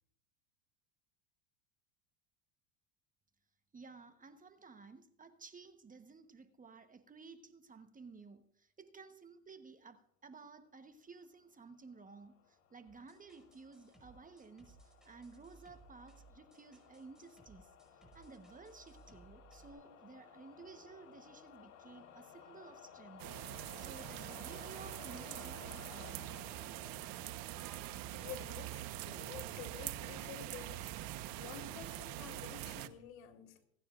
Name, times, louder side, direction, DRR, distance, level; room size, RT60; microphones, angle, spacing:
voice 1, 3.7-23.2 23.5-26.3, right 4 dB, 20° right, 1.2 m, -55 dB
sound 1, 11.8-28.3, left 8 dB, 50° left, 4.2 m, -58 dB
sound 2, 12.9-19.7, right 4 dB, ahead, 5.6 m, -63 dB
sound 3, 23.2-32.9, right 14 dB, 55° right, 1.1 m, -44 dB
voice 2, 28.1-30.9 31.4-33.6, left 9 dB, 70° left, 3.2 m, -50 dB
27.0 x 9.6 x 2.5 m
supercardioid pair, 105°, 41 cm